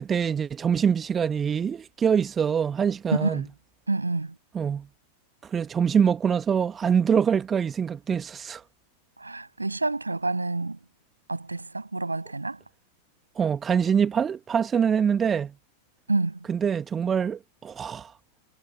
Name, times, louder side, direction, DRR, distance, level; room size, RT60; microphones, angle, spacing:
voice 1, 0.1-3.4 4.5-4.9 5.4-8.6 13.3-15.5 16.5-18.1, right 7 dB, 20° right, 1.4 m, -24 dB
voice 2, 3.1-3.5 3.9-4.4 9.2-10.8 11.3-12.6 16.1-16.4, right 3 dB, 80° right, 6.8 m, -28 dB
figure-of-eight pair, 90°, 0 cm